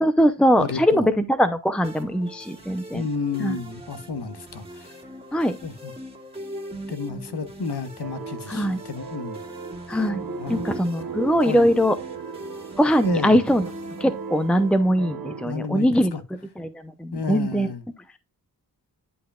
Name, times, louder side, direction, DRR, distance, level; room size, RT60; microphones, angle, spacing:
voice 1, 0.0-3.0 3.4-3.6 5.3-5.5 8.5-8.8 9.9-10.2 10.5-12.0 12.8-13.6 14.0-16.1 16.6-16.7 17.0-17.7, equal, 5° left, 0.6 m, -21 dB
voice 2, 0.6-1.1 2.9-5.0 5.6-5.9 6.9-9.4 10.4-10.6 11.4-11.7 13.0-13.4 15.4-16.2 17.1-17.8, left 4 dB, 75° left, 1.2 m, -31 dB
sound 1, 1.8-14.9, right 1 dB, 15° right, 2.0 m, -40 dB
sound 2, 8.0-15.5, right 6 dB, 60° right, 1.0 m, -36 dB
11.0 x 5.7 x 2.4 m
wide cardioid pair, 80°, 40 cm